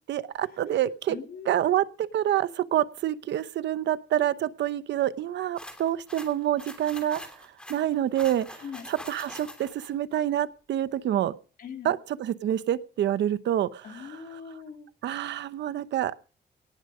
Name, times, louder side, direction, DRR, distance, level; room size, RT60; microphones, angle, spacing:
voice 1, 0.1-1.2 1.5-7.2 7.7-11.3 11.8-14.2 15.0-16.1, right 11 dB, 85° right, 14 dB, 0.9 m, -27 dB
voice 2, 1.1-1.5 8.5-8.9 11.6-11.9 13.8-14.9, left 6 dB, 55° left, 4 dB, 3.3 m, -41 dB
sound 1, 5.6-9.9, left 1 dB, 5° left, 3.1 m, -44 dB
18.5 x 10.0 x 5.0 m, 0.39 s
wide cardioid pair, 165°, 18 cm